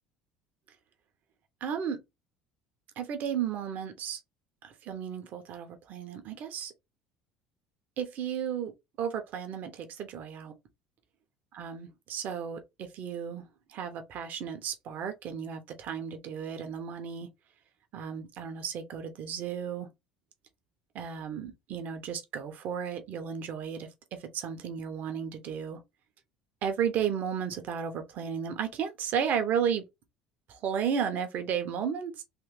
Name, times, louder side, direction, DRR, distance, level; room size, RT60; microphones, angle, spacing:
voice 1, 1.6-2.0 3.0-4.2 4.6-6.7 8.0-8.7 9.0-10.5 11.5-17.3 17.9-19.9 20.9-23.9 24.2-25.8 26.6-29.8 30.5-32.2, right 8 dB, 50° right, 1.0 m, -34 dB
3.4 x 3.2 x 3.1 m
figure-of-eight pair, 60°, 4 cm